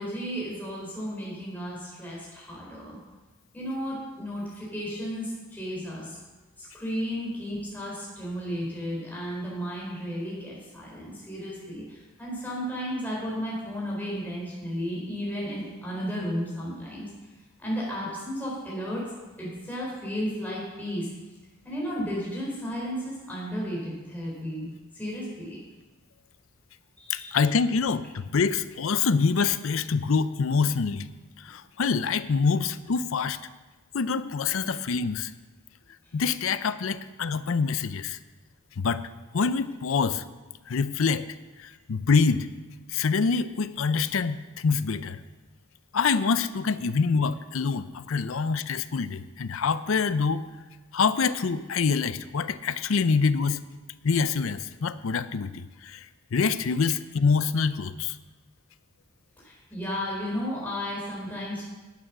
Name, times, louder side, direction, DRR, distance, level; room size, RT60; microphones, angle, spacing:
voice 1, 0.0-3.0 3.5-6.2 6.6-17.1 17.6-19.0 19.4-21.1 21.6-24.7 24.9-25.6 27.0-27.4 59.4-61.6, equal, 10° left, -5 dB, 4.3 m, -33 dB
voice 2, 27.1-31.1 31.4-33.4 33.9-35.3 36.1-38.2 38.8-40.2 40.7-41.3 41.6-42.5 42.9-45.2 45.9-50.4 50.9-53.6 54.0-58.2, left 5 dB, 65° left, 14 dB, 0.5 m, -26 dB
11.5 x 8.9 x 6.0 m, 1.2 s
head